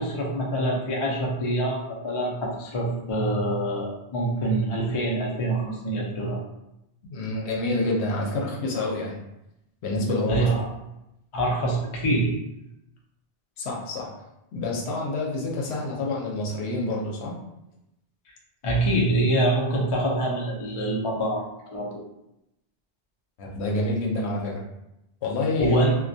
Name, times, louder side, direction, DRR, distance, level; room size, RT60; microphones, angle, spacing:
voice 1, 0.0-6.4 10.3-10.7 11.3-12.3 18.6-21.9 25.6-26.0, right 1 dB, 45° left, -2 dB, 0.4 m, -25 dB
voice 2, 7.1-9.2 9.8-10.5 13.6-14.1 14.5-17.4 23.4-24.6 25.2-25.8, left 2 dB, 75° left, -1 dB, 0.9 m, -27 dB
2.2 x 2.2 x 2.6 m, 0.87 s
omnidirectional pair, 1.1 m